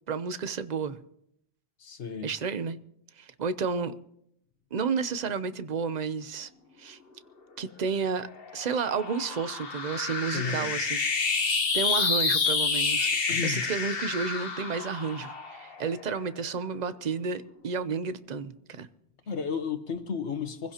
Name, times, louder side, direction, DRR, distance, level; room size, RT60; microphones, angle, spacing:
voice 1, 0.1-1.0 2.2-2.8 3.2-4.0 4.7-6.5 6.8-7.0 7.6-8.3 8.5-11.0 11.7-13.1 13.4-18.9, right 5 dB, 45° right, 0.7 m, -31 dB
voice 2, 1.8-2.3 3.6-3.7 10.3-10.7 13.3-13.6 19.3-20.7, left 6 dB, 85° left, 1.6 m, -33 dB
sound 1, 7.9-16.5, left 4 dB, 60° left, 1.4 m, -29 dB
24.5 x 16.0 x 2.9 m
omnidirectional pair, 1.1 m